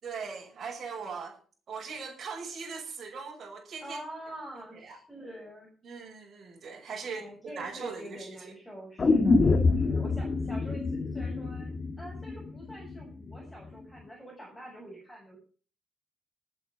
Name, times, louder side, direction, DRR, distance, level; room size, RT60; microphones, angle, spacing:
voice 1, 0.0-1.4 1.7-4.0 4.8-5.0 5.8-8.5, right 5 dB, 45° right, -3 dB, 6.1 m, -40 dB
voice 2, 3.8-5.7 7.1-15.4, right 1 dB, 5° left, -3 dB, 6.9 m, -46 dB
sound 1, 9.0-13.0 13.3-13.4, left 3 dB, 35° left, 1.9 m, -26 dB
20.0 x 8.1 x 4.3 m, 0.40 s
cardioid pair, 125°, 0 cm